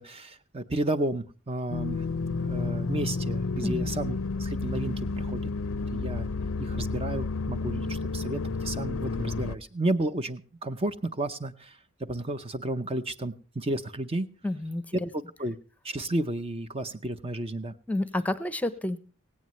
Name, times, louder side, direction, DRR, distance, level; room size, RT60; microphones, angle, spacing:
voice 1, 0.0-5.4 5.9-6.3 6.6-11.8 12.1-14.3 15.4-15.6 15.8-17.7, right 1 dB, 25° right, 10 dB, 0.7 m, -32 dB
sound 1, 1.7-9.6, left 3 dB, 65° left, 0.6 m, -31 dB
voice 2, 3.6-3.9 14.4-15.1 17.9-19.0, left 1 dB, 5° left, 14 dB, 0.7 m, -30 dB
17.0 x 17.0 x 3.1 m, 0.35 s
head